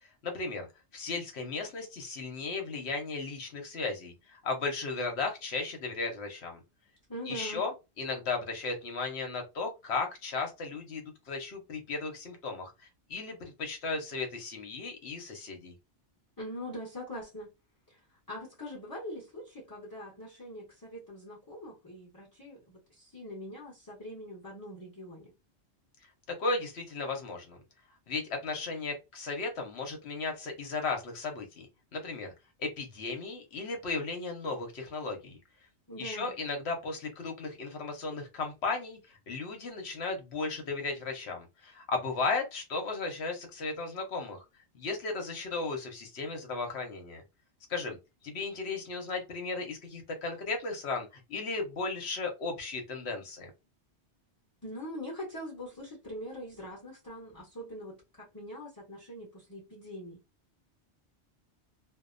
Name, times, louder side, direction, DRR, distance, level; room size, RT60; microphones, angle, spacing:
voice 1, 0.2-0.7 0.9-6.6 7.3-7.7 8.0-12.7 13.1-15.7 26.4-27.6 28.1-31.7 31.9-32.3 32.6-35.4 36.0-44.5 44.7-47.2 47.7-48.0 48.2-53.5, left 3 dB, 70° left, 1.0 m, -35 dB
voice 2, 7.1-7.6 16.4-17.5 17.9-18.0 18.3-25.3 35.9-36.3 54.6-60.2, equal, 20° left, 0.9 m, -43 dB
2.7 x 2.0 x 2.5 m
omnidirectional pair, 1.2 m